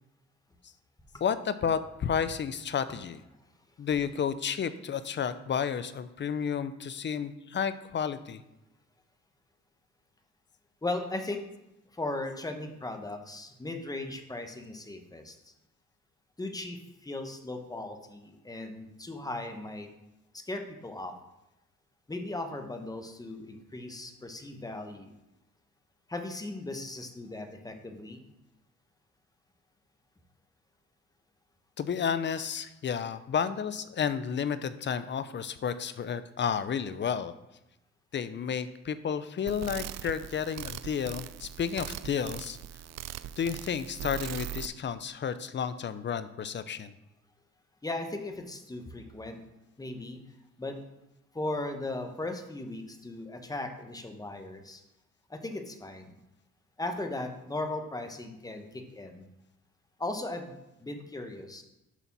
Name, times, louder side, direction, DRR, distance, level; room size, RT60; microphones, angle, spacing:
voice 1, 1.2-3.2 3.8-8.4 31.8-37.3 38.1-42.6 43.4-46.9, left 7 dB, 40° left, 13 dB, 0.5 m, -31 dB
voice 2, 10.8-11.4 11.9-15.5 16.4-19.9 20.3-21.1 22.1-25.1 26.1-28.2 47.8-49.4 49.8-50.2 50.6-50.8 51.3-54.8 55.3-56.2 56.8-59.3 60.0-61.6, left 2 dB, 10° left, 5 dB, 1.0 m, -37 dB
sound 1, 39.5-44.7, right 12 dB, 60° right, 0.4 m, -40 dB
7.0 x 4.1 x 5.9 m, 0.92 s
cardioid pair, 90°, 30 cm